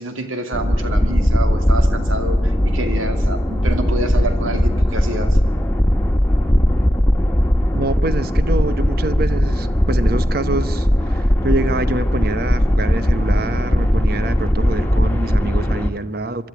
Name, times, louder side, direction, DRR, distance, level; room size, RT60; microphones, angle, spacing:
voice 1, 0.0-5.4, right 1 dB, 90° right, 2.5 m, -27 dB
sound 1, 0.5-15.9, equal, 10° left, 1.4 m, -18 dB
voice 2, 7.7-16.5, right 2 dB, 50° right, 1.0 m, -25 dB
24.0 x 12.5 x 9.2 m
head